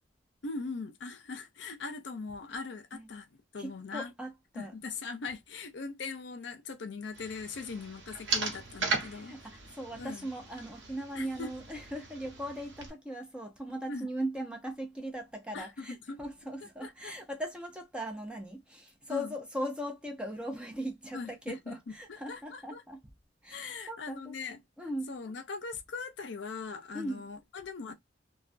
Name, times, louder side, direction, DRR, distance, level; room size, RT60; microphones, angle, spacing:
voice 1, 0.4-3.3 3.5-4.1 4.5-9.4 10.0-10.3 11.1-11.5 13.9-14.1 15.5-16.2 16.8-17.1 19.1-19.3 21.1-22.8 23.5-24.6 25.1-27.9, left 4 dB, 70° left, 0.5 m, -40 dB
voice 2, 3.6-4.7 9.0-23.0 23.4-24.4 24.8-25.2 26.9-27.2, equal, 5° right, 0.6 m, -39 dB
sound 1, 7.1-12.9, right 4 dB, 80° right, 0.8 m, -38 dB
2.3 x 2.2 x 2.4 m
head